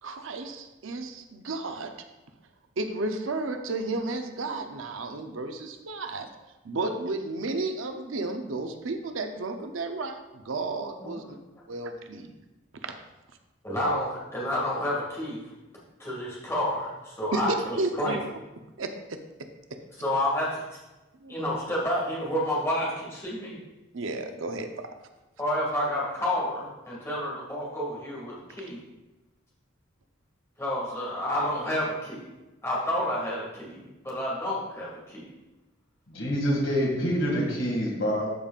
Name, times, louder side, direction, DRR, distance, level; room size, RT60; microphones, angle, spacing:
voice 1, 0.0-1.9 2.8-6.3 6.6-11.4 11.7-12.4 12.8-12.9 17.3-18.2 18.8-19.8 21.2-21.4 23.9-24.9, right 2 dB, 80° right, 6 dB, 0.7 m, -33 dB
voice 2, 13.6-15.5 16.0-18.2 20.0-20.6 21.3-23.6 25.4-28.8 30.6-32.2 32.6-35.3, left 1 dB, 15° left, -6 dB, 2.0 m, -29 dB
voice 3, 36.1-38.3, equal, 75° left, -2 dB, 2.2 m, -26 dB
12.5 x 5.2 x 2.4 m, 1.1 s
head